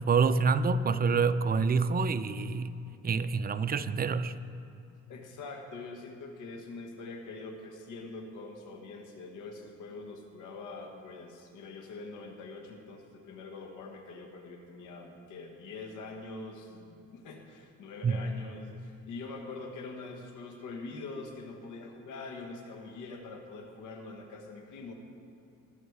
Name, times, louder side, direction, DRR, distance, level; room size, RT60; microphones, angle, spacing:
voice 1, 0.0-2.8 3.0-4.3 18.0-18.2, right 5 dB, 30° right, 12 dB, 0.5 m, -27 dB
voice 2, 5.1-24.9, left 3 dB, 90° left, 3 dB, 1.5 m, -44 dB
19.5 x 6.5 x 4.8 m, 2.7 s
cardioid pair, 90°, 30 cm